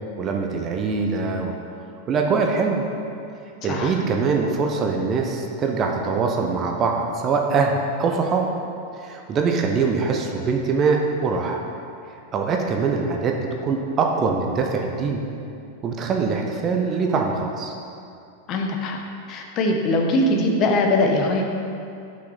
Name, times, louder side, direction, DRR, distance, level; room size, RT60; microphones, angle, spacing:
voice 1, 0.2-1.6 2.1-2.8 3.6-8.5 9.0-11.6 12.3-15.2 15.8-17.7, right 4 dB, 30° right, 2 dB, 0.8 m, -23 dB
voice 2, 18.5-19.0 19.3-21.4, left 2 dB, 35° left, 1 dB, 1.0 m, -21 dB
6.0 x 6.0 x 6.5 m, 2.5 s
figure-of-eight pair, 90°, 0 cm